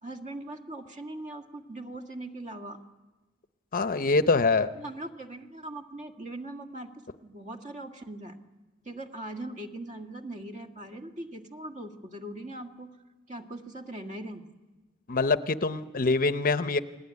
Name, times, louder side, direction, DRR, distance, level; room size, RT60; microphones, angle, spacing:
voice 1, 0.0-2.8 4.7-6.9 7.2-8.3 8.8-12.9 13.3-14.5, right 1 dB, 35° right, 4 dB, 1.8 m, -40 dB
voice 2, 3.7-4.7 15.1-16.8, left 3 dB, 45° left, 12 dB, 0.8 m, -24 dB
29.0 x 20.0 x 9.6 m, 1.2 s
head